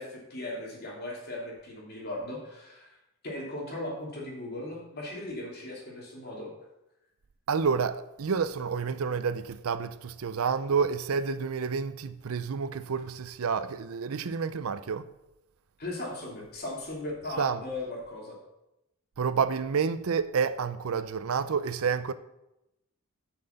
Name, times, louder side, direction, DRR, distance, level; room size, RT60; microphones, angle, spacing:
voice 1, 0.0-3.0 3.2-6.5 15.8-18.4, left 1 dB, 50° left, 2.8 m, -38 dB
voice 2, 7.5-15.1 17.4-17.6 19.2-22.1, right 6 dB, 75° right, 0.5 m, -29 dB
7.7 x 5.9 x 6.7 m
head